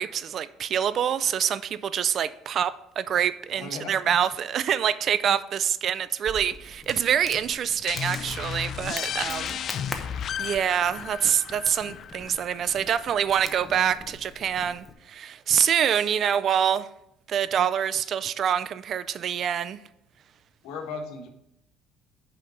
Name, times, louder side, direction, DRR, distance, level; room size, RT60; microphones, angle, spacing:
voice 1, 0.0-9.6 10.4-16.9 17.3-19.8, right 9 dB, 45° right, 0.4 m, -26 dB
voice 2, 3.5-4.0 20.6-21.3, left 4 dB, 75° left, 1.5 m, -36 dB
Crackle, 6.3-14.9, left 2 dB, 10° left, 0.9 m, -43 dB
sound 1, 7.9-13.3, left 8 dB, 45° left, 0.3 m, -34 dB
5.8 x 5.2 x 6.3 m
cardioid pair, 125°, 0 cm